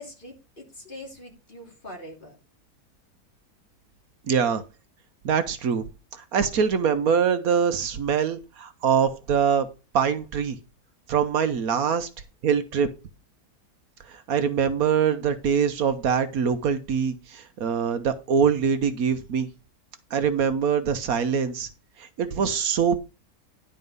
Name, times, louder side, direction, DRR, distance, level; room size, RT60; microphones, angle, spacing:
voice 1, 0.0-2.3, left 1 dB, 30° left, 3.0 m, -42 dB
voice 2, 4.3-4.6 5.2-5.8 6.3-9.7 9.9-10.6 11.1-12.1 12.4-12.9 14.1-19.5 20.1-21.7 22.0-23.0, right 7 dB, 65° right, 1.3 m, -23 dB
11.0 x 4.5 x 5.3 m
omnidirectional pair, 1.7 m